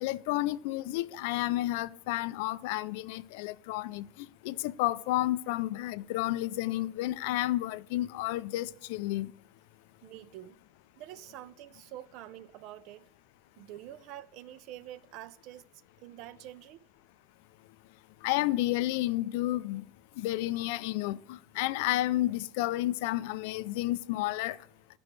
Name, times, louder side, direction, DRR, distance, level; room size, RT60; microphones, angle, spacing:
voice 1, 0.0-9.3 18.2-19.8 20.2-24.6, left 16 dB, 65° left, 0.3 m, -31 dB
voice 2, 10.0-10.6 11.0-13.1 13.6-15.7 16.0-16.9, right 13 dB, 45° right, 0.4 m, -46 dB
15.0 x 6.0 x 3.2 m
cardioid pair, 175°, 0 cm